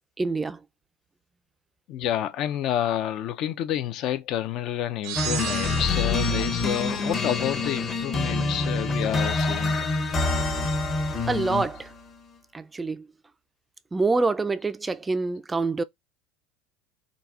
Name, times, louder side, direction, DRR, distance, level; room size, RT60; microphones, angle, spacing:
voice 1, 0.2-0.6 11.3-11.9 12.5-13.1 13.9-15.8, right 3 dB, 15° right, 0.3 m, -26 dB
voice 2, 1.9-9.9, left 11 dB, 55° left, 0.4 m, -29 dB
sound 1, 5.0-6.4, right 10 dB, 65° right, 0.5 m, -33 dB
sound 2, 5.2-11.9, left 3 dB, 30° left, 0.8 m, -26 dB
3.9 x 2.3 x 2.4 m
supercardioid pair, 95°, 0 cm